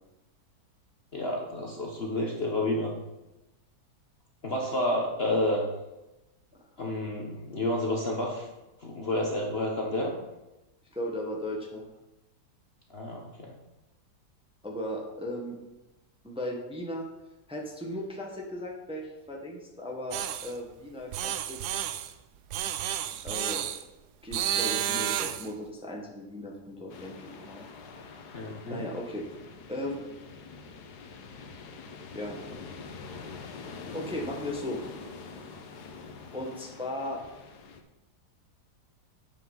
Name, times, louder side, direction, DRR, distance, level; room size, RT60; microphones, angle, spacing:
voice 1, 1.1-2.9 4.4-5.7 6.8-8.5 8.8-10.1 12.9-13.5 28.3-28.9, left 1 dB, 40° left, -1 dB, 1.2 m, -30 dB
voice 2, 10.9-11.9 14.6-15.6 16.2-17.1 17.5-21.6 23.2-23.6 24.2-27.1 27.4-27.7 28.6-29.2 29.7-30.0 32.1-32.4 33.9-34.8 36.3-37.2, left 1 dB, 5° right, -1 dB, 1.2 m, -36 dB
sound 1, 20.1-20.5 21.1-22.1 22.5-23.8 24.3-25.5, right 11 dB, 75° right, 1.1 m, -31 dB
sound 2, 26.9-37.8, left 4 dB, 70° left, 1.5 m, -45 dB
8.9 x 5.8 x 5.6 m, 1.0 s
omnidirectional pair, 1.8 m